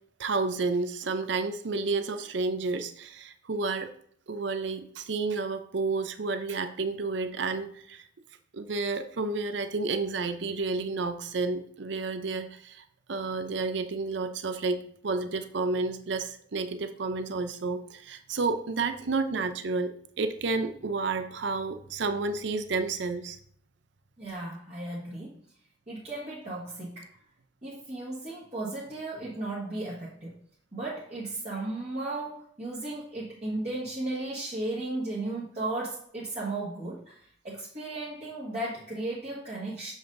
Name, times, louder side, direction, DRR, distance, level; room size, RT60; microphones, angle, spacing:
voice 1, 0.2-3.9 4.3-8.0 8.5-23.4, right 3 dB, 65° right, 9 dB, 0.6 m, -31 dB
voice 2, 24.2-25.3 25.9-27.2 27.6-30.4 30.7-39.9, right 2 dB, 35° right, -8 dB, 1.5 m, -35 dB
7.0 x 6.0 x 2.6 m, 0.63 s
head